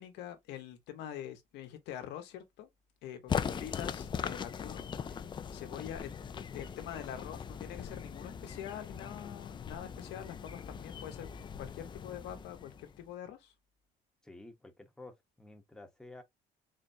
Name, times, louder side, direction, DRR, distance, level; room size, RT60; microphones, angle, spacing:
voice 1, 0.0-2.7 3.0-6.1 6.5-11.3 11.6-13.5, left 10 dB, 85° left, 0.9 m, -45 dB
sound 1, 3.3-13.1, left 7 dB, 30° left, 0.3 m, -40 dB
voice 2, 14.2-16.2, left 2 dB, 5° left, 0.8 m, -51 dB
3.9 x 3.2 x 2.6 m
cardioid pair, 110°, 17 cm